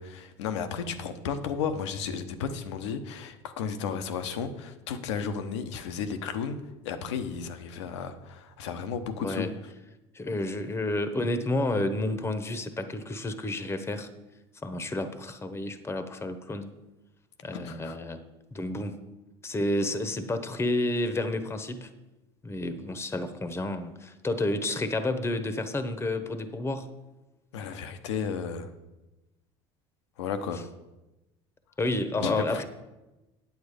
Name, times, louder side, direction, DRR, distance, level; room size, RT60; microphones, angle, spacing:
voice 1, 0.0-6.6 6.8-9.5 17.5-18.0 27.5-28.7 30.2-30.6 32.2-32.6, left 6 dB, 85° left, 9 dB, 0.9 m, -33 dB
voice 2, 9.2-9.5 10.1-14.1 14.6-16.7 17.4-18.2 18.5-19.0 19.4-21.9 22.4-26.9 31.8-32.6, left 2 dB, 15° left, 9 dB, 1.0 m, -30 dB
9.3 x 7.9 x 5.1 m, 1.0 s
hypercardioid pair, 80°, 14 cm